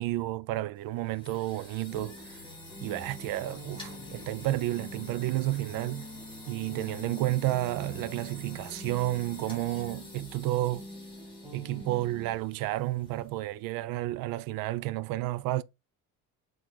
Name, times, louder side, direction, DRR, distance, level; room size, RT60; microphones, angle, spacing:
voice 1, 0.0-2.4 2.8-6.1 6.5-10.9 11.5-15.6, right 16 dB, 90° right, 0.6 m, -31 dB
sound 1, 0.8-13.6, left 2 dB, 15° left, 3.2 m, -49 dB
sound 2, 1.9-12.3, equal, 10° right, 1.8 m, -46 dB
7.6 x 4.0 x 3.7 m
cardioid pair, 145°, 33 cm